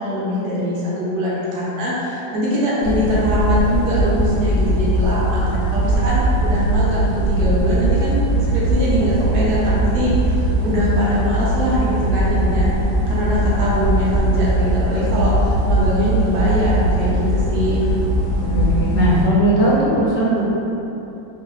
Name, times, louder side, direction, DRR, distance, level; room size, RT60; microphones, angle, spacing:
voice 1, 0.0-8.2 8.5-12.7 13.1-17.8, left 1 dB, 70° right, -7 dB, 1.2 m, -22 dB
sound 1, 2.8-19.3, right 1 dB, 85° right, 0.6 m, -20 dB
voice 2, 18.4-20.4, right 1 dB, 70° left, -7 dB, 1.3 m, -18 dB
3.0 x 2.9 x 3.0 m, 3.0 s
omnidirectional pair, 1.9 m